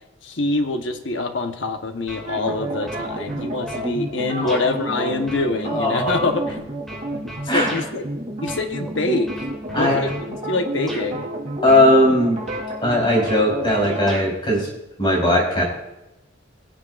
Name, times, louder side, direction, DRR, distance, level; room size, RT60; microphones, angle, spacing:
voice 1, 0.2-6.6 7.4-8.1 8.4-9.3 9.8-11.3, left 2 dB, 70° left, 6 dB, 1.0 m, -25 dB
sound 1, 2.1-2.6 2.9-3.9 4.5-4.7 5.3-7.9 8.5-8.9 9.3-10.3 10.9-11.1 11.7-12.2 12.5-14.3, right 1 dB, ahead, 2.6 m, -37 dB
sound 2, 2.3-14.1, right 1 dB, 40° right, 3.4 m, -30 dB
voice 2, 4.4-4.7 5.6-6.3 7.5-7.7 9.7-10.0 11.6-12.4 12.8-14.7 15.0-15.6, left 1 dB, 25° left, -3 dB, 3.7 m, -18 dB
21.5 x 7.4 x 2.5 m, 0.95 s
head